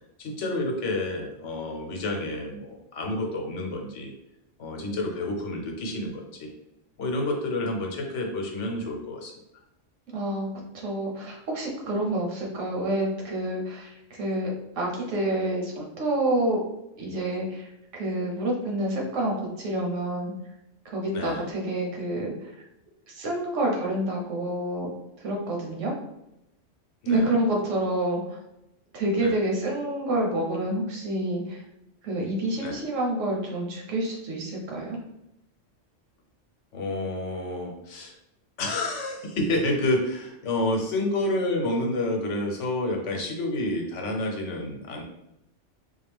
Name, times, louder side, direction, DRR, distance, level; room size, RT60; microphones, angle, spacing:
voice 1, 0.2-4.1 4.6-6.5 7.0-9.3 21.1-21.5 27.0-27.3 29.2-29.3 32.6-32.8 36.7-38.1 38.6-45.0, left 1 dB, 75° left, 1 dB, 1.1 m, -29 dB
voice 2, 10.1-10.5 10.7-16.6 17.0-17.7 17.9-20.3 20.8-22.5 23.1-24.9 25.2-25.9 27.1-28.4 28.9-31.6 32.0-35.0, right 1 dB, 90° right, -1 dB, 1.3 m, -28 dB
3.8 x 2.2 x 3.4 m, 0.87 s
omnidirectional pair, 1.2 m